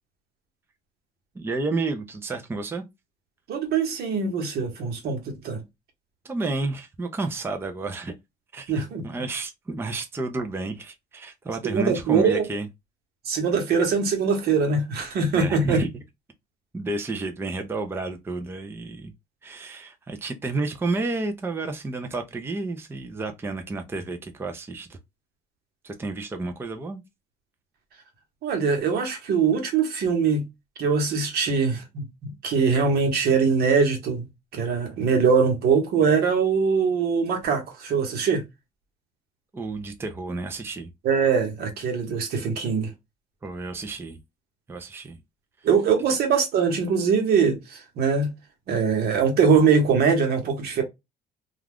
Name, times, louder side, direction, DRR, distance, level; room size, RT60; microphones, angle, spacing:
voice 1, 1.4-2.8 6.2-8.1 8.5-12.7 15.3-15.9 16.7-19.1 19.4-25.0 25.8-27.0 39.5-40.9 43.4-44.2 44.7-45.2, right 3 dB, 15° right, 0.4 m, -31 dB
voice 2, 3.5-5.6 8.7-9.1 11.6-12.5 13.2-15.8 28.4-30.4 30.8-34.3 34.5-38.4 41.0-42.9 45.6-48.3 48.7-50.8, right 5 dB, 70° right, 1.1 m, -22 dB
2.4 x 2.3 x 3.4 m
cardioid pair, 110°, 17 cm